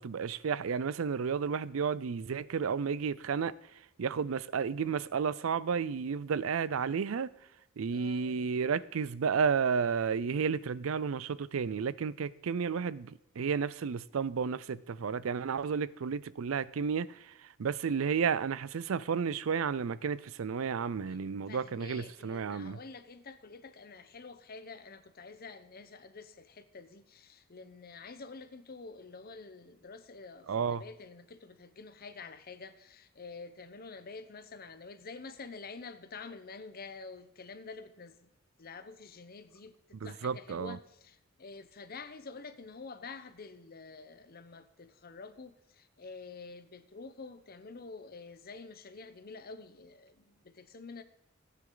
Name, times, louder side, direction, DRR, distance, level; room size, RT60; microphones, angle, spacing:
voice 1, 0.0-3.5 4.0-7.3 7.8-13.1 13.4-17.3 17.6-22.8 30.5-30.8 40.0-40.8, right 6 dB, 80° right, 0.5 m, -32 dB
voice 2, 7.9-8.5 21.1-21.2 21.5-38.3 38.6-51.0, left 4 dB, 50° left, 0.9 m, -48 dB
15.0 x 9.4 x 3.9 m
head